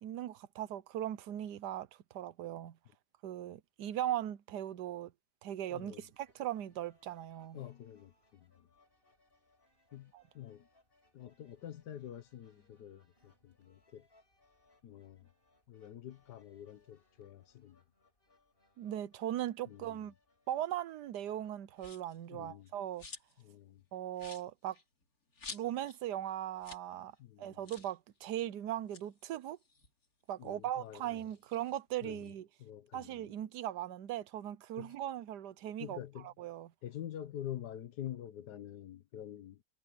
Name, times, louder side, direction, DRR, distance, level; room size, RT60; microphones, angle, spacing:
voice 1, 0.0-1.9 2.1-2.8 3.2-5.1 5.4-7.6 10.1-10.2 18.8-20.1 20.5-23.1 23.9-24.8 25.5-29.6 30.3-32.5 32.9-36.0 36.2-36.7, right 12 dB, 85° right, 1.4 m, -39 dB
voice 2, 5.7-6.1 7.5-8.7 9.9-10.7 11.1-14.1 14.8-15.3 15.7-17.8 19.7-20.1 22.3-22.7 23.4-23.8 27.2-27.6 30.4-31.2 32.0-32.3 32.6-33.3 34.8-34.9 35.8-36.3 36.8-39.6, left 11 dB, 80° left, 1.6 m, -47 dB
sound 1, 5.8-22.3, left 2 dB, 35° left, 5.9 m, -72 dB
sound 2, 21.8-22.2 22.6-23.5 23.8-23.9 24.1-26.0 26.3-26.4 26.6-26.9 27.2-27.3 27.6-28.0 28.7-30.5 30.9-32.3, left 4 dB, 65° left, 3.2 m, -51 dB
omnidirectional pair, 1.7 m